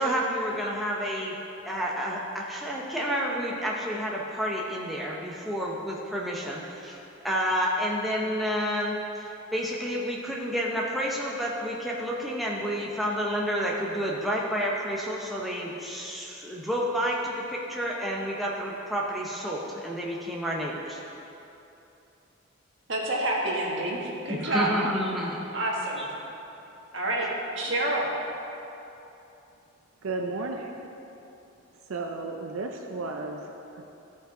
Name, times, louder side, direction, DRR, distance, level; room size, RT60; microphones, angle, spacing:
voice 1, 0.0-1.4 1.6-21.0 24.3-25.4 26.0-26.1, equal, ahead, -4 dB, 0.7 m, -30 dB
voice 2, 22.9-24.7 25.5-26.1 26.9-27.3 27.6-28.1, right 1 dB, 60° right, -3 dB, 1.6 m, -28 dB
voice 3, 30.0-30.7 31.9-33.8, right 3 dB, 85° right, 3 dB, 0.6 m, -33 dB
14.0 x 5.4 x 3.8 m, 2.9 s
head